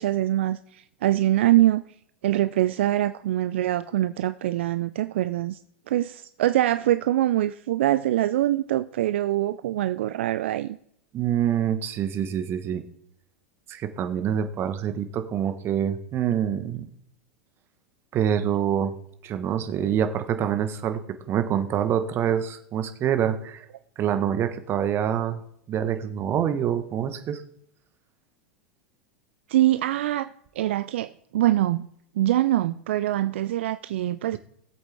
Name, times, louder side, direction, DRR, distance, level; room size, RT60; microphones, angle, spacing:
voice 1, 0.0-1.8 2.2-5.6 5.9-10.8 29.5-30.3 30.6-31.9 32.2-34.4, right 14 dB, 65° right, 13 dB, 0.3 m, -24 dB
voice 2, 11.1-12.8 13.7-16.9 18.1-18.9 19.2-21.0 21.3-23.7 24.0-25.4 25.7-27.4, right 9 dB, 35° right, 9 dB, 1.1 m, -26 dB
18.0 x 8.0 x 3.4 m, 0.73 s
figure-of-eight pair, 90°, 7 cm